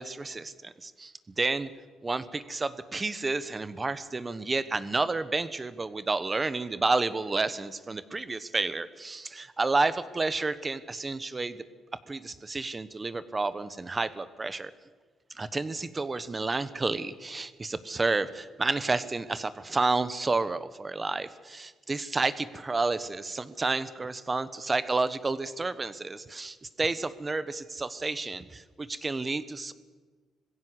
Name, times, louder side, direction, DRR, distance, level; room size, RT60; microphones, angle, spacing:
voice 1, 0.0-1.7 2.0-11.6 12.1-14.7 15.3-29.7, right 3 dB, 25° right, 14 dB, 1.0 m, -30 dB
20.5 x 16.0 x 8.1 m, 1.4 s
cardioid pair, 90°, 0 cm